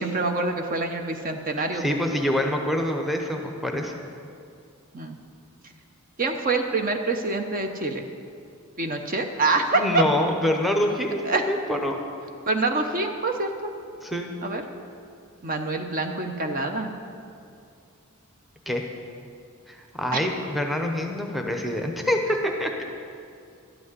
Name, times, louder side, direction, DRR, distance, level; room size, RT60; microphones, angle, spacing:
voice 1, 0.0-1.8 4.9-5.2 6.2-8.1 8.8-10.0 11.2-11.5 12.5-13.7 14.4-14.6 15.4-16.9 20.1-20.2, right 3 dB, 40° right, 5 dB, 0.7 m, -26 dB
voice 2, 1.6-3.9 9.7-12.0 14.0-14.3 18.7-18.8 19.7-22.8, left 1 dB, ahead, 2 dB, 0.8 m, -26 dB
12.5 x 6.2 x 9.5 m, 2.4 s
head